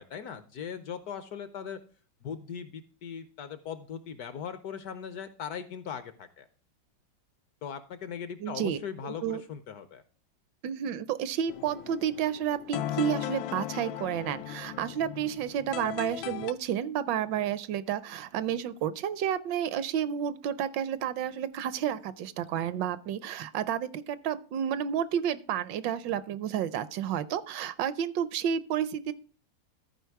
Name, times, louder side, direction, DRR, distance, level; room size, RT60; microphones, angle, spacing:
voice 1, 0.0-1.8 2.2-6.5 7.6-10.0, left 7 dB, 65° left, 12 dB, 1.0 m, -39 dB
voice 2, 8.4-9.4 10.6-29.1, right 9 dB, 75° right, 15 dB, 1.2 m, -31 dB
sound 1, 11.5-16.5, left 12 dB, 90° left, 1.4 m, -37 dB
13.5 x 4.8 x 4.6 m, 0.40 s
omnidirectional pair, 2.1 m